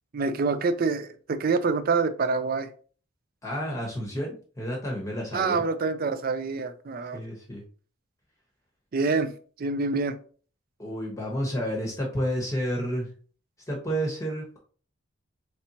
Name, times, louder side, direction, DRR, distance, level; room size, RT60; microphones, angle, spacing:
voice 1, 0.1-2.7 5.3-7.2 8.9-9.3 9.6-10.2, right 4 dB, 45° right, 0.4 m, -26 dB
voice 2, 3.4-5.6 7.1-7.6 10.8-13.1 13.7-14.6, equal, 15° left, 0.9 m, -30 dB
4.2 x 3.2 x 2.8 m
head